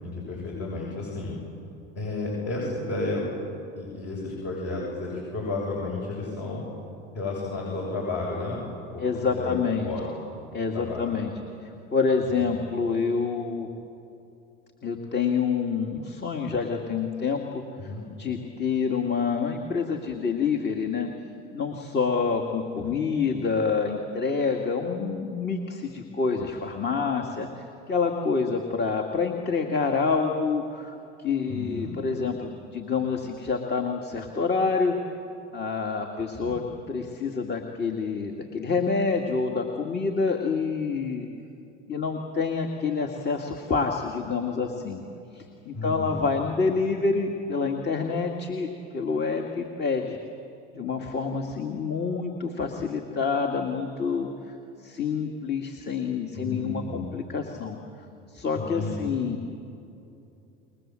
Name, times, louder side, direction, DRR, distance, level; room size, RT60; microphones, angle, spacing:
voice 1, 0.0-1.4 2.0-3.3 3.7-6.6 7.1-8.6 8.9-9.5 9.8-10.0 10.7-11.1 12.3-12.4 17.8-18.0 22.8-23.0 31.5-32.0 36.4-36.6 45.7-46.2 56.3-57.0 58.5-59.0, left 2 dB, 50° left, -3 dB, 7.7 m, -32 dB
voice 2, 9.0-9.9 10.5-11.3 11.6-13.7 14.8-17.9 18.2-21.1 21.5-35.0 35.5-41.3 41.9-45.0 45.3-50.2 50.7-54.5 54.8-57.8 58.3-59.4, left 5 dB, 35° left, 3 dB, 2.3 m, -27 dB
28.5 x 22.0 x 7.7 m, 2.7 s
hypercardioid pair, 85°, 32 cm